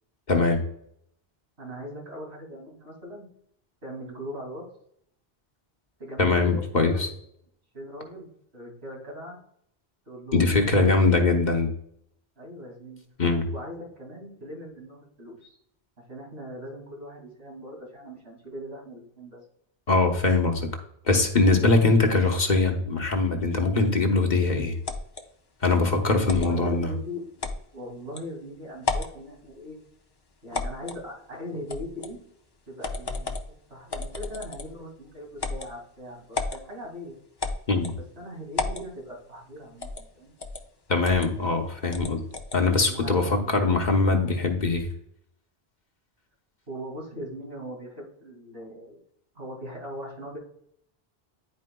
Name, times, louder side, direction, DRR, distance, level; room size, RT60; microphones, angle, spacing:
voice 1, 0.3-0.6 6.2-7.1 10.3-11.7 13.2-13.5 19.9-20.7 21.1-24.8 25.6-26.9 37.7-37.9 40.9-42.2 42.5-44.9, left 3 dB, 45° left, 3 dB, 1.1 m, -22 dB
voice 2, 1.6-3.3 3.8-4.6 6.0-7.1 7.7-9.4 10.1-11.0 12.4-13.0 13.5-15.6 16.1-19.4 26.2-29.8 30.4-32.2 32.7-37.1 37.9-40.3 42.7-44.3 46.7-49.0 49.3-50.4, equal, 85° right, -3 dB, 2.9 m, -40 dB
sound 1, 24.8-25.2 26.3-26.5 27.4-27.6 28.2-28.3 28.8-29.2 30.5-31.0 31.7-32.1 32.8-33.5 33.9-34.8 35.4-35.7 36.3-36.6 37.4-38.0 38.5-38.9 39.8-40.1 40.4-40.6 41.0-41.3 41.9-42.6, left 3 dB, 30° left, 0.5 m, -32 dB
11.0 x 4.5 x 2.2 m, 0.70 s
omnidirectional pair, 1.0 m